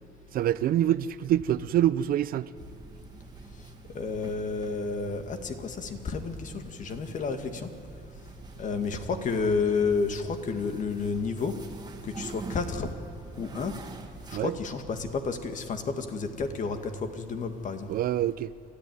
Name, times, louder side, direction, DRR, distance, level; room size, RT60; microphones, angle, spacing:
voice 1, 0.3-2.5 14.3-14.5 17.9-18.5, right 12 dB, 60° right, 0.5 m, -25 dB
sound 1, 2.6-14.4, right 3 dB, 25° right, 2.0 m, -45 dB
voice 2, 3.9-7.7 8.6-11.6 12.0-12.9 13.4-13.7 14.3-17.9, left 4 dB, 50° left, 2.1 m, -31 dB
29.0 x 14.0 x 9.5 m
cardioid pair, 110°, 17 cm